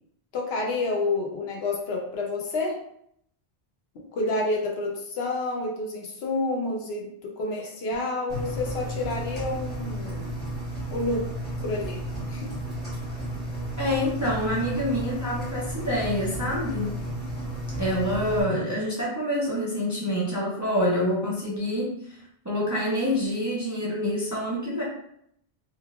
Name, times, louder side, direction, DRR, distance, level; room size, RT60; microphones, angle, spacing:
voice 1, 0.3-2.8 4.1-10.3 10.9-11.2 11.6-12.0 12.3-12.5, left 2 dB, 80° left, -1 dB, 0.9 m, -29 dB
Engine, 8.3-18.4, right 1 dB, 30° left, 1.5 m, -33 dB
voice 2, 13.8-16.9 17.8-24.8, equal, 30° right, -5 dB, 0.3 m, -27 dB
3.2 x 2.3 x 2.3 m, 0.71 s
omnidirectional pair, 1.0 m